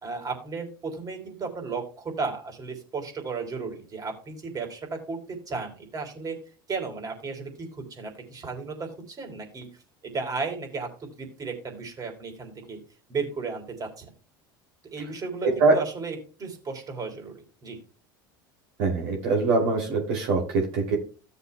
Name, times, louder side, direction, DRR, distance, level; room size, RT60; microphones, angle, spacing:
voice 1, 0.0-6.4 6.7-9.7 10.0-10.9 11.2-12.8 13.1-14.0 14.9-17.8, right 4 dB, 35° right, 3 dB, 3.8 m, -34 dB
voice 2, 15.4-15.7 18.8-20.9, right 3 dB, 65° right, -1 dB, 2.9 m, -23 dB
16.5 x 6.9 x 2.3 m, 0.37 s
hypercardioid pair, 75°, 11 cm